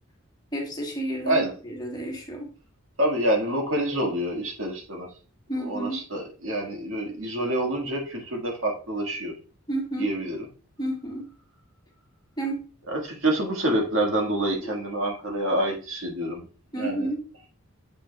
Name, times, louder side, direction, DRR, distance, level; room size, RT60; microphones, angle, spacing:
voice 1, 0.5-2.5 5.5-6.0 9.7-10.1 10.8-11.3 12.4-12.6 16.7-17.2, right 1 dB, 20° left, 0 dB, 1.3 m, -31 dB
voice 2, 3.0-5.1 5.6-9.3 10.0-10.5 12.9-16.5 16.7-17.1, right 1 dB, 65° right, 0 dB, 1.8 m, -27 dB
7.4 x 5.9 x 2.3 m, 0.38 s
head